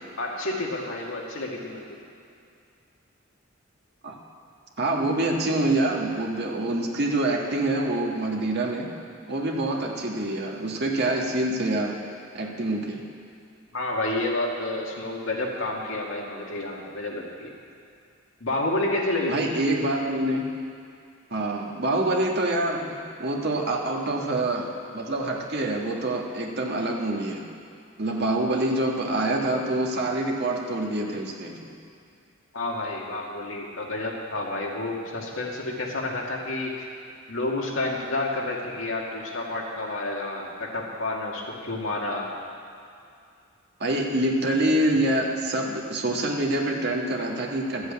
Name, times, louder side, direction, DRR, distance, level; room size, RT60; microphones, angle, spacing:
voice 1, 0.2-1.9 13.7-17.5 18.4-19.5 32.5-36.9 37.3-42.3, left 2 dB, 70° left, -2 dB, 2.2 m, -29 dB
voice 2, 4.8-8.9 9.3-12.0 12.3-13.0 19.3-20.5 21.3-27.4 28.0-31.7 43.8-47.9, right 1 dB, 55° right, 0 dB, 1.7 m, -26 dB
13.0 x 8.0 x 8.6 m, 2.4 s
head